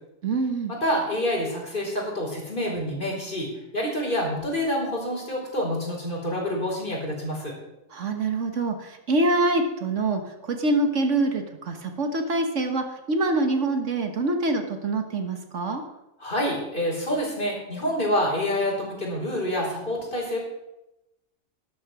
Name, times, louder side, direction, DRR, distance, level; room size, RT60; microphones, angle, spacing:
voice 1, 0.2-0.7 7.9-15.8, right 2 dB, 65° right, 5 dB, 1.6 m, -25 dB
voice 2, 0.8-7.5 16.2-20.4, equal, 40° left, -2 dB, 4.8 m, -27 dB
12.5 x 11.5 x 6.1 m, 0.92 s
omnidirectional pair, 1.4 m